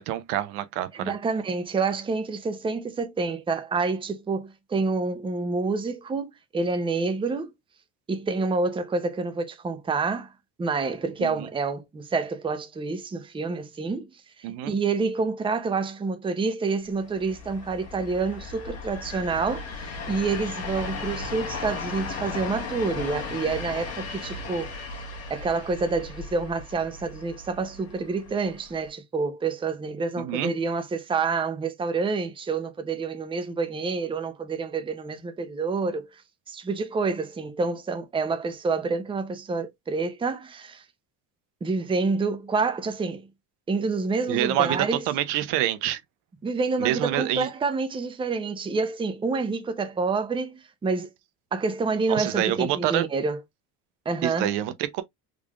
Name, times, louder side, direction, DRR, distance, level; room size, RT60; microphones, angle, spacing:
voice 1, 0.0-1.1 11.2-11.3 14.4-14.7 30.2-30.5 44.3-46.0 46.8-47.5 52.1-53.1 54.2-55.0, right 12 dB, 75° right, 0.8 m, -26 dB
voice 2, 0.9-7.5 8.1-10.3 10.6-14.1 14.5-24.7 25.3-36.1 36.5-40.8 41.6-43.3 43.7-45.0 46.4-51.1 51.5-53.4 54.1-54.5, right 4 dB, 15° right, 0.6 m, -28 dB
sound 1, 16.9-28.9, left 4 dB, 35° left, 1.3 m, -36 dB
3.7 x 3.3 x 2.3 m
cardioid pair, 115°, 41 cm